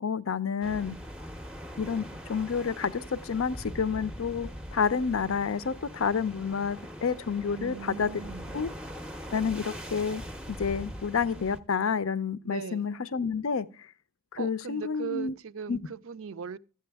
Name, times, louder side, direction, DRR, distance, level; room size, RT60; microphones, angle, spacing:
voice 1, 0.0-1.0 1.8-8.1 8.5-8.7 9.3-10.2 10.5-13.7 14.3-15.3 15.7-15.8, left 6 dB, 65° left, 0.5 m, -29 dB
sound 1, 0.6-11.6, equal, 5° right, 0.6 m, -42 dB
voice 2, 7.5-8.5 12.4-12.9 14.4-16.6, right 6 dB, 60° right, 0.4 m, -39 dB
12.5 x 7.7 x 3.4 m
head